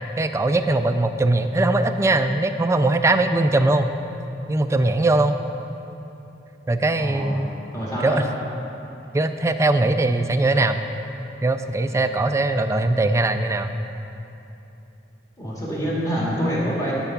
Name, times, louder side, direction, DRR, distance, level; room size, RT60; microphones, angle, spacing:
voice 1, 0.2-3.9 4.5-5.4 6.7-7.5 8.0-8.2 9.1-10.8 11.4-13.7, right 2 dB, 15° right, 9 dB, 0.3 m, -20 dB
voice 2, 7.0-7.4 7.7-8.2 15.4-16.9, equal, 20° left, -6 dB, 1.9 m, -26 dB
11.0 x 4.4 x 5.8 m, 2.9 s
head